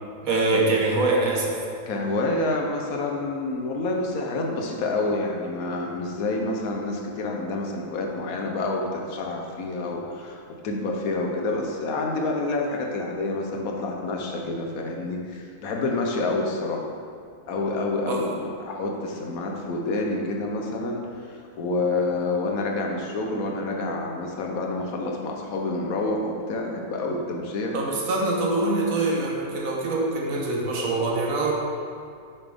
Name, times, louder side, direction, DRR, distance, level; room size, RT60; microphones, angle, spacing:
voice 1, 0.2-1.5 18.1-18.2 27.7-31.5, right 2 dB, 75° right, -1 dB, 1.4 m, -24 dB
voice 2, 1.9-16.9 17.5-27.7, left 2 dB, 80° left, 1 dB, 1.3 m, -28 dB
7.1 x 5.9 x 3.5 m, 2.3 s
omnidirectional pair, 1.5 m